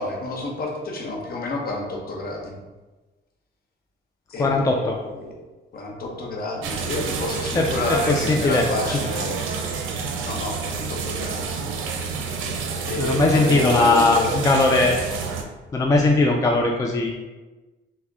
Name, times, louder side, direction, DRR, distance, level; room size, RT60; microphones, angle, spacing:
voice 1, 0.0-2.6 4.3-5.4 5.7-9.5 10.2-11.7 12.9-14.4, left 2 dB, 50° left, 0 dB, 0.8 m, -29 dB
voice 2, 4.4-5.0 7.5-9.0 12.7-15.0 15.7-17.1, left 2 dB, 15° left, 1 dB, 0.3 m, -20 dB
sound 1, 6.6-15.4, right 5 dB, 80° right, 0.5 m, -29 dB
3.5 x 2.1 x 3.4 m, 1.2 s
cardioid pair, 90°, 20 cm